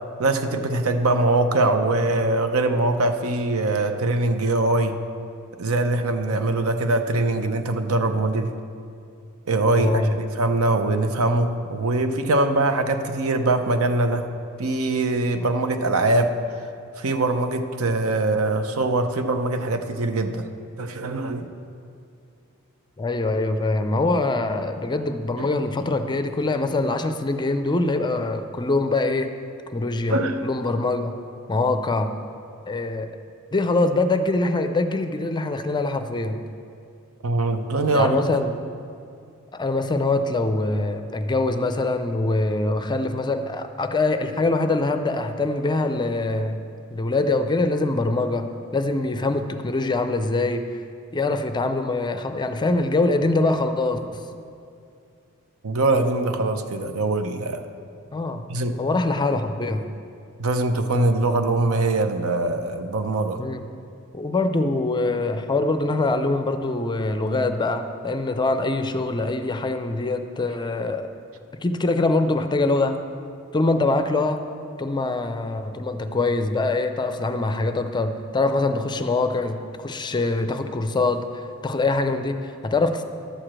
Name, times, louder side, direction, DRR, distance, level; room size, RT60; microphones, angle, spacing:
voice 1, 0.2-4.9 5.6-8.5 9.5-14.3 14.6-16.3 17.0-20.4 20.8-21.5 25.4-25.5 30.1-30.4 37.2-38.2 55.6-57.6 58.5-58.8 60.4-63.4, right 2 dB, 75° right, 7 dB, 0.7 m, -22 dB
voice 2, 9.8-10.2 23.0-29.3 29.7-31.1 31.5-32.1 32.7-33.1 33.5-36.4 37.9-38.6 39.5-46.6 46.9-50.8 51.1-54.2 58.1-58.5 58.8-59.9 63.4-63.6 64.1-71.1 71.6-73.0 73.5-74.4 74.8-83.0, left 2 dB, 20° left, 8 dB, 0.4 m, -24 dB
11.5 x 4.9 x 7.4 m, 2.4 s
head